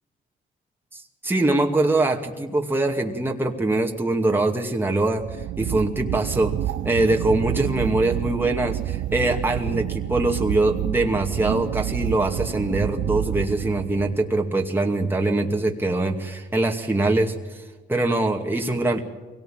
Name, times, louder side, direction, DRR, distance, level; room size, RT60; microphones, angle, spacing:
voice 1, 0.9-5.2 5.6-6.5 6.8-17.6 17.9-19.0, right 2 dB, 10° right, 1 dB, 2.4 m, -23 dB
sound 1, 5.2-14.3, right 14 dB, 75° right, 0.6 m, -29 dB
23.0 x 18.0 x 8.9 m, 1.3 s
cardioid pair, 90°, 20 cm